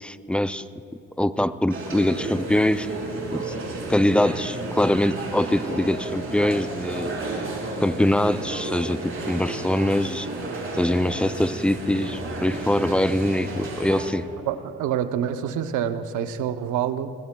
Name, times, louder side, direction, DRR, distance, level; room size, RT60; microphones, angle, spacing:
voice 1, 0.0-0.6 1.2-2.9 3.3-3.5 3.9-7.1 7.8-10.3 10.7-14.3, left 1 dB, 5° left, 13 dB, 0.3 m, -23 dB
sound 1, 1.7-14.1, right 2 dB, 45° right, 3.8 m, -32 dB
voice 2, 14.5-17.1, right 9 dB, 85° right, 10 dB, 0.8 m, -27 dB
22.0 x 19.5 x 2.3 m, 2.9 s
cardioid pair, 90°, 30 cm